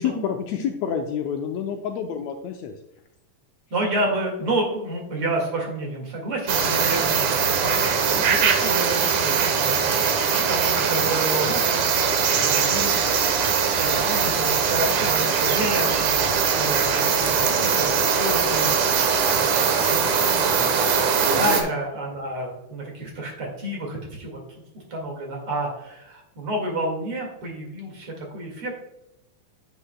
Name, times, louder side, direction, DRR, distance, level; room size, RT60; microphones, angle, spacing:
voice 1, 0.0-2.7 21.2-21.6, left 8 dB, 75° left, 4 dB, 1.7 m, -28 dB
voice 2, 3.7-24.4 24.9-28.8, right 1 dB, 50° right, 0 dB, 2.6 m, -30 dB
sound 1, 6.5-21.6, right 6 dB, 80° right, 2.5 m, -21 dB
9.9 x 8.4 x 2.2 m, 0.86 s
omnidirectional pair, 3.4 m